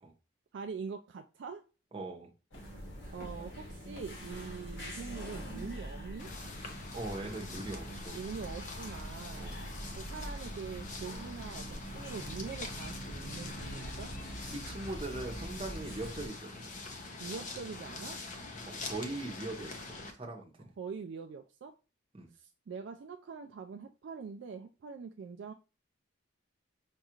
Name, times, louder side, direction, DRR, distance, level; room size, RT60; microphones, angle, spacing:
voice 1, 0.5-1.6 3.1-6.3 8.1-9.5 10.0-14.1 17.2-18.2 20.8-21.7 22.3-25.5, right 5 dB, 60° right, 6 dB, 0.3 m, -43 dB
voice 2, 1.9-2.3 6.9-8.2 9.4-9.6 14.5-16.7 18.7-19.7 20.1-20.7 22.1-22.3, right 2 dB, 25° right, 1 dB, 0.8 m, -41 dB
sound 1, 2.5-11.3, equal, 85° left, 1.2 m, -61 dB
sound 2, 2.5-16.3, right 1 dB, 55° left, 1.1 m, -44 dB
sound 3, 6.2-20.1, left 3 dB, 40° left, 0.6 m, -44 dB
5.3 x 2.4 x 2.9 m, 0.32 s
head